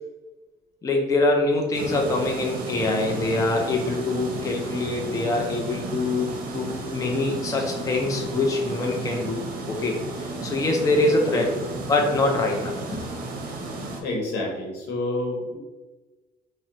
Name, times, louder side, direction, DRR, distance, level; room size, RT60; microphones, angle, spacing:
voice 1, 0.8-11.5 11.9-13.1, left 2 dB, 20° left, 1 dB, 0.4 m, -24 dB
sound 1, 1.7-14.0, right 2 dB, 55° right, 0.6 m, -33 dB
voice 2, 14.0-15.6, left 2 dB, 80° left, -1 dB, 0.9 m, -28 dB
2.7 x 2.0 x 3.7 m, 1.2 s
cardioid pair, 110°, 17 cm